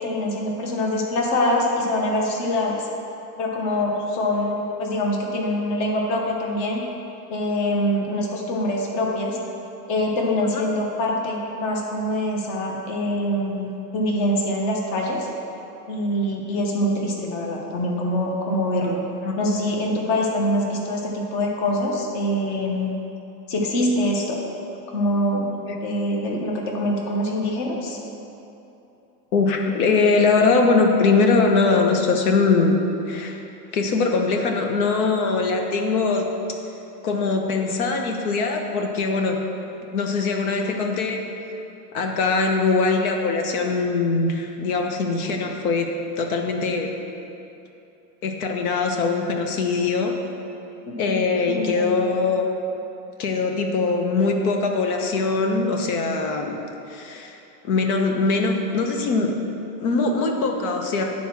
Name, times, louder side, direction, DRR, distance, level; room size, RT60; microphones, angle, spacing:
voice 1, 0.0-2.9 3.4-6.9 7.3-9.4 9.9-15.3 15.9-19.1 19.4-22.9 23.5-24.4 24.9-28.0 50.9-51.2 51.5-52.0, left 1 dB, 35° left, 0 dB, 1.2 m, -24 dB
voice 2, 29.3-32.8 33.1-33.4 33.7-36.3 37.0-39.4 39.9-41.2 41.9-45.9 46.2-46.9 48.2-50.1 51.0-52.5 53.2-56.6 56.9-57.4 57.6-59.3 59.8-61.0, left 4 dB, 60° left, 3 dB, 1.2 m, -22 dB
9.3 x 4.4 x 6.0 m, 2.9 s
supercardioid pair, 155°, 48 cm